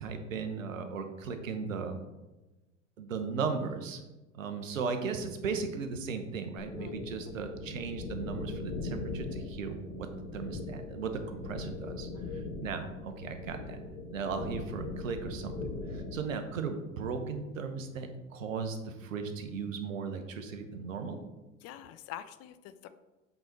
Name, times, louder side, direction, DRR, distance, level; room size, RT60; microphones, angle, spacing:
voice 1, 0.0-2.0 3.0-4.0 4.3-10.1 10.3-13.8 14.1-21.2, right 5 dB, 80° right, 7 dB, 1.0 m, -37 dB
sound 1, 6.6-16.2, left 3 dB, 60° left, 1.9 m, -40 dB
voice 2, 21.6-22.9, left 11 dB, 40° left, 12 dB, 0.5 m, -46 dB
7.7 x 3.9 x 4.5 m, 1.1 s
hypercardioid pair, 85°, 38 cm